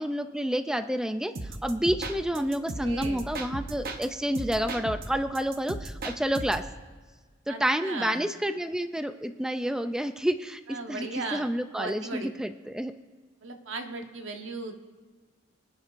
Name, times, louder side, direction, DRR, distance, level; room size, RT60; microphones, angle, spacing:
voice 1, 0.0-6.6 7.5-12.9, equal, 5° right, 9 dB, 0.3 m, -29 dB
sound 1, 1.3-4.1 4.3-6.7, right 2 dB, 50° right, 0.9 m, -36 dB
voice 2, 2.7-3.2 7.5-8.2 10.7-11.5 11.7-12.3 13.4-14.8, right 3 dB, 70° right, 4 dB, 1.3 m, -37 dB
25.0 x 9.4 x 2.5 m, 1.5 s
head